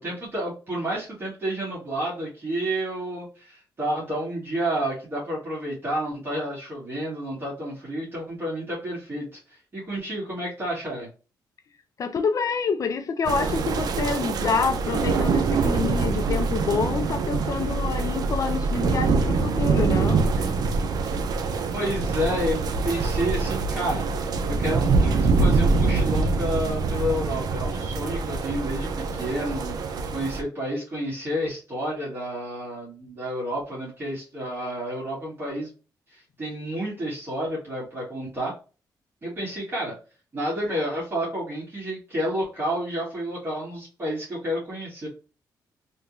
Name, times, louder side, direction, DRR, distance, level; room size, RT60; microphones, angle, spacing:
voice 1, 0.0-11.1 21.7-24.1 24.5-35.7 36.1-38.5 39.2-39.9 40.3-45.1, equal, 30° right, 1.8 m, -30 dB
voice 2, 12.0-20.5, left 5 dB, 50° left, 0.4 m, -27 dB
sound 1, 13.2-30.4, right 4 dB, 65° right, 0.5 m, -24 dB
3.5 x 2.9 x 2.7 m
cardioid pair, 110°, 7 cm